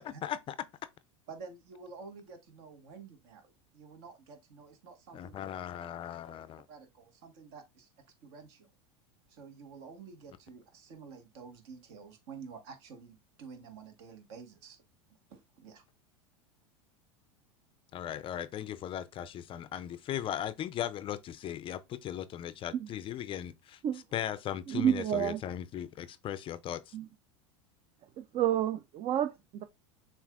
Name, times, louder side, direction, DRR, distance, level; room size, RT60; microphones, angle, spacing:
voice 1, 0.2-0.5 5.1-6.6 17.9-23.8 24.1-26.9, left 11 dB, 35° left, 0.4 m, -38 dB
voice 2, 1.3-5.4 6.7-7.9 8.2-8.7 9.3-14.8 15.3-15.8, right 5 dB, 65° right, 1.4 m, -50 dB
voice 3, 24.7-25.4 26.9-27.0 28.2-29.6, right 10 dB, 40° right, 0.4 m, -30 dB
6.9 x 2.5 x 2.4 m
hypercardioid pair, 95°, 16 cm